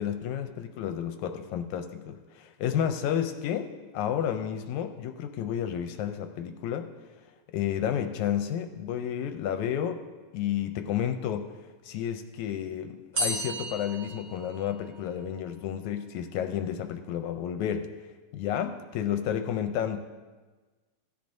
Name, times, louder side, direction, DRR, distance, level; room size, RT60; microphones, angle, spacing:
voice 1, 0.0-6.9 7.5-10.0 10.3-11.6 11.8-17.9 18.3-20.0, left 9 dB, 80° left, 7 dB, 1.9 m, -31 dB
sound 1, 13.1-15.1, equal, 35° right, 1.9 m, -33 dB
16.0 x 10.0 x 2.6 m, 1.3 s
omnidirectional pair, 3.5 m